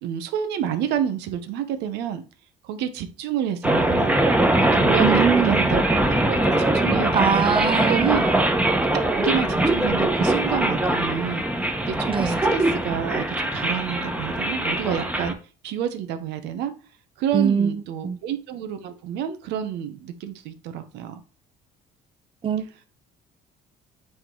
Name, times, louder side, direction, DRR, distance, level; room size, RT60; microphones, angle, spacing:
voice 1, 0.0-2.2 2.6-4.1 4.6-7.5 7.9-8.3 8.9-13.2 13.5-15.4 15.6-16.7 17.2-21.2, right 9 dB, 85° right, 1.0 m, -29 dB
sound 1, 3.6-15.3, right 1 dB, 10° right, 1.1 m, -22 dB
voice 2, 5.0-5.7 7.1-8.4 12.0-12.4 17.3-18.2 22.4-22.7, right 7 dB, 30° right, 0.6 m, -23 dB
8.7 x 3.7 x 4.7 m
cardioid pair, 110°, 17 cm